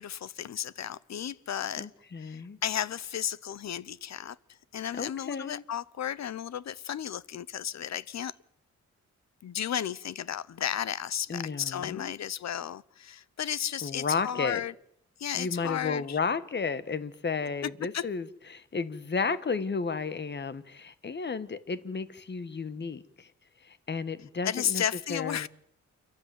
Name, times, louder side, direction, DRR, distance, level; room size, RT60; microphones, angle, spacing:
voice 1, 0.0-1.9 2.2-4.4 4.7-8.3 9.4-14.7 15.2-16.2 17.9-18.1 24.4-25.5, left 10 dB, 65° left, 0.8 m, -33 dB
voice 2, 1.8-2.6 5.0-5.6 11.3-12.1 13.8-14.6 15.3-23.3 23.6-24.8 25.1-25.5, left 5 dB, 35° left, 1.3 m, -33 dB
29.0 x 12.0 x 9.4 m
wide cardioid pair, 115°, 29 cm